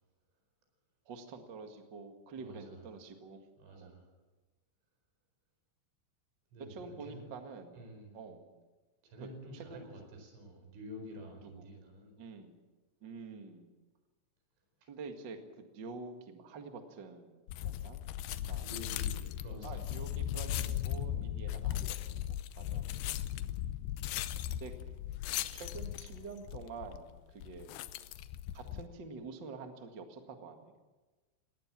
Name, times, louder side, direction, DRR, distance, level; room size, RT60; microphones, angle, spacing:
voice 1, 1.0-3.5 3.8-3.9 6.7-7.8 8.1-8.6 9.2-9.9 11.4-11.6 12.2-12.6 13.0-13.7 14.9-18.0 18.5-18.7 19.6-22.8 24.6-24.7 25.5-27.8 28.5-30.7, right 4 dB, 65° right, 5 dB, 1.1 m, -47 dB
voice 2, 2.4-2.9 3.6-4.1 6.5-7.3 7.7-8.2 9.0-12.2 14.8-14.9 18.1-19.9 21.4-21.7 22.7-23.5, equal, 90° right, 4 dB, 7.1 m, -50 dB
sound 1, 17.5-28.9, left 12 dB, 80° left, 2.5 m, -37 dB
19.0 x 19.0 x 7.5 m, 1.2 s
omnidirectional pair, 5.4 m